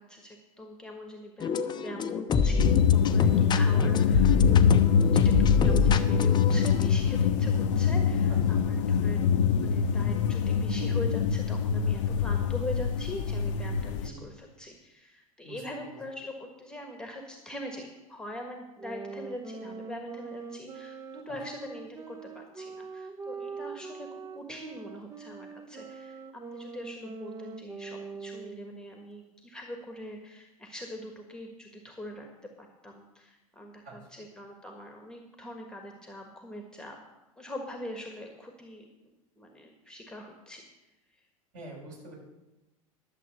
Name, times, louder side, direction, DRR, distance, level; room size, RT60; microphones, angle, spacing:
voice 1, 0.0-1.5 1.8-26.2 26.5-32.3 32.6-37.0 37.4-38.8 39.4-40.6, left 1 dB, 5° left, 3 dB, 1.5 m, -42 dB
sound 1, 1.4-6.9, left 6 dB, 25° left, 0.7 m, -27 dB
sound 2, 2.6-14.1, left 7 dB, 60° left, 0.7 m, -24 dB
sound 3, 18.8-28.8, right 4 dB, 20° right, 0.8 m, -43 dB
voice 2, 41.5-42.2, right 2 dB, 45° right, -2 dB, 5.5 m, -45 dB
11.5 x 7.4 x 7.0 m, 1.0 s
figure-of-eight pair, 75°, 18 cm